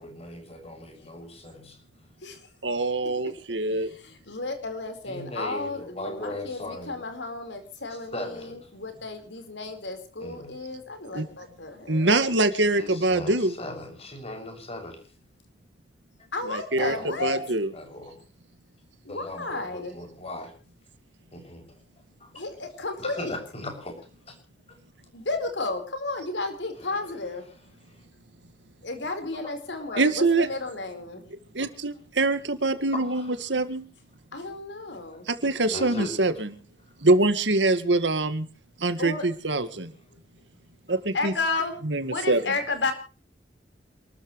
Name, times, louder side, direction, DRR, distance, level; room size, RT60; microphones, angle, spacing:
voice 1, 0.0-1.8 5.1-6.9 8.1-8.7 10.2-10.5 12.8-15.0 16.8-17.3 17.7-18.2 19.1-20.5 21.3-21.8 22.2-22.3 23.0-24.3 24.7-24.8 26.8-26.9 28.0-28.1 29.9-30.0 31.6-31.7 32.9-33.3 35.7-36.1, left 1 dB, 35° left, 4 dB, 6.8 m, -38 dB
voice 2, 2.6-3.9 11.1-11.2 11.9-13.5 16.5-17.0 17.2-17.7 30.0-30.5 31.6-33.8 35.4-36.5 37.0-38.4 38.8-39.9 40.9-41.3 41.8-42.4, right 2 dB, 85° right, 11 dB, 1.9 m, -24 dB
voice 3, 3.6-12.2 16.3-17.4 19.0-20.0 22.3-23.3 25.1-27.5 28.8-31.2 34.3-35.3 37.7-37.8 39.0-39.2 41.1-41.8 42.1-42.9, left 3 dB, 80° left, 6 dB, 4.5 m, -33 dB
28.0 x 13.5 x 3.2 m, 0.36 s
head